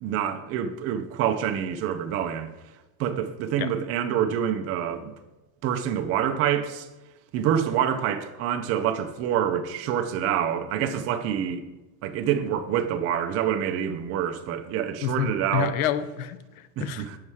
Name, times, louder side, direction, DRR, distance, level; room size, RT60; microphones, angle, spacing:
voice 1, 0.0-2.5 3.0-5.1 5.6-6.9 7.3-11.6 12.0-15.7 16.8-17.2, right 9 dB, 35° right, 0.7 m, -26 dB
voice 2, 15.0-17.1, left 9 dB, 85° left, 0.7 m, -29 dB
7.3 x 5.5 x 4.7 m
supercardioid pair, 150°, 41 cm